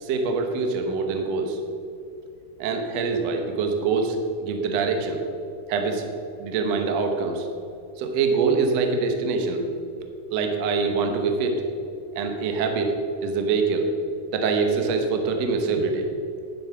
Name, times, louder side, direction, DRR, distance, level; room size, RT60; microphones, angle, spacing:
voice 1, 0.0-1.6 2.6-5.2 5.7-6.0 6.4-7.5 8.0-9.6 10.3-11.6 12.1-13.9 14.3-16.1, right 4 dB, 65° right, 4 dB, 1.7 m, -24 dB
11.0 x 7.7 x 5.9 m, 2.6 s
omnidirectional pair, 4.2 m